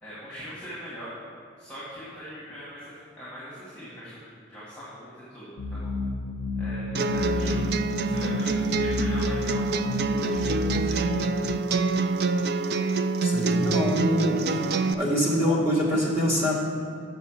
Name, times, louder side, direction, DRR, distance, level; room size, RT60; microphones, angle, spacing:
voice 1, 0.0-1.1 1.6-5.9 6.6-11.1, equal, 5° left, -10 dB, 1.9 m, -42 dB
sound 1, 5.6-11.6, left 2 dB, 80° left, 0.5 m, -30 dB
sound 2, 6.9-14.9, right 3 dB, 50° right, 0.3 m, -26 dB
voice 2, 13.2-14.4 14.9-16.5, equal, 10° right, -5 dB, 1.7 m, -24 dB
6.9 x 5.6 x 7.1 m, 2.2 s
head